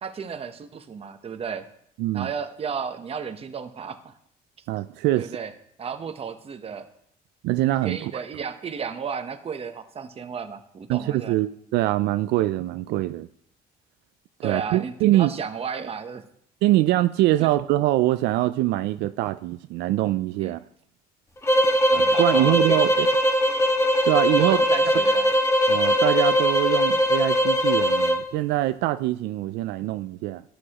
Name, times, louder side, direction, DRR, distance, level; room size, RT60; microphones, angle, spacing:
voice 1, 0.0-1.7 2.1-4.2 5.1-5.5 5.8-6.9 7.8-11.4 14.4-16.3 17.4-17.5 20.4-20.6 21.6-21.7 22.1-22.9 24.4-25.3, right 6 dB, 35° right, 0.9 m, -33 dB
voice 2, 2.0-2.3 4.7-5.4 7.4-8.1 10.9-13.3 14.4-15.3 16.6-20.6 21.9-23.1 24.1-24.6 25.7-30.4, right 16 dB, 85° right, 0.4 m, -23 dB
sound 1, 21.4-28.2, equal, 15° left, 1.5 m, -20 dB
12.5 x 8.5 x 3.0 m
cardioid pair, 110°, 17 cm